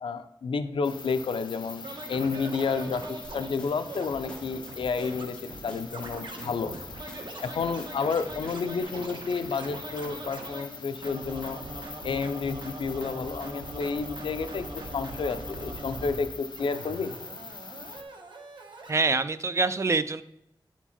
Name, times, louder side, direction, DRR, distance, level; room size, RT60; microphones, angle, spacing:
voice 1, 0.0-6.7 7.4-11.6 12.0-17.1, left 5 dB, 90° left, 10 dB, 0.5 m, -31 dB
sound 1, 0.8-18.0, left 4 dB, 65° left, 1.0 m, -44 dB
Scratching (performance technique), 1.8-10.6 11.0-16.2 16.5-18.9, right 2 dB, 65° right, 1.3 m, -41 dB
sound 2, 3.2-8.8, left 1 dB, 10° left, 2.0 m, -48 dB
voice 2, 18.9-20.2, right 3 dB, 35° right, 13 dB, 0.4 m, -25 dB
9.9 x 4.5 x 4.2 m, 0.83 s
wide cardioid pair, 115°, 9 cm